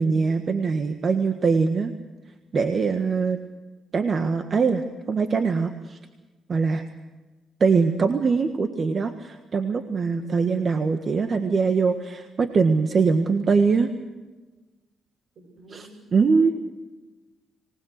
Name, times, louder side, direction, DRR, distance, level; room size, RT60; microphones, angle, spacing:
voice 1, 0.0-1.9 2.5-3.4 3.9-6.0 6.5-6.8 7.6-13.9 15.7-16.5, right 5 dB, 45° right, 7 dB, 1.5 m, -22 dB
voice 2, 15.3-16.5, equal, 70° right, 4 dB, 6.6 m, -44 dB
25.5 x 19.5 x 6.6 m, 1.2 s
cardioid pair, 90°, 0 cm